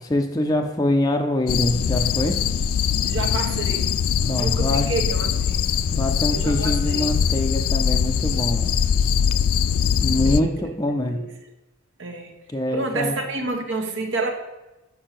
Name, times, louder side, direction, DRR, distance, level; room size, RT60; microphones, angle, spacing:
voice 1, 0.1-2.4 4.2-4.9 5.9-8.7 10.0-11.2 12.5-13.1, left 1 dB, 15° left, 3 dB, 0.6 m, -24 dB
sound 1, 1.5-10.4, left 7 dB, 90° left, 0.4 m, -22 dB
voice 2, 3.0-4.0 4.3-5.7 6.3-7.1 10.2-10.6 10.9-11.4 12.0-12.3 12.7-14.3, right 3 dB, 55° right, 3 dB, 1.2 m, -29 dB
6.6 x 5.7 x 5.9 m, 1.0 s
head